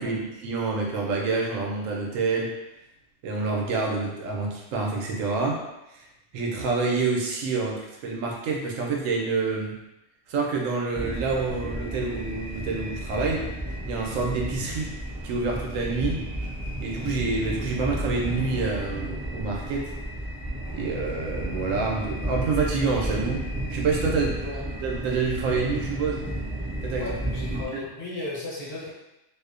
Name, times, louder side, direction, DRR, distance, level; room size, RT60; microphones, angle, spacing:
voice 1, 0.0-2.5 3.2-5.6 5.9-6.0 6.3-9.7 10.3-13.5 13.9-14.9 15.2-16.2 16.8-19.9 20.7-24.4 24.8-26.2 26.8-27.0 27.5-27.6, right 4 dB, 85° right, -1 dB, 1.0 m, -27 dB
sound 1, 10.9-27.7, right 1 dB, 5° right, 0.4 m, -32 dB
voice 2, 27.0-28.9, left 2 dB, 55° left, -7 dB, 1.0 m, -35 dB
2.6 x 2.1 x 2.4 m, 0.94 s
omnidirectional pair, 1.3 m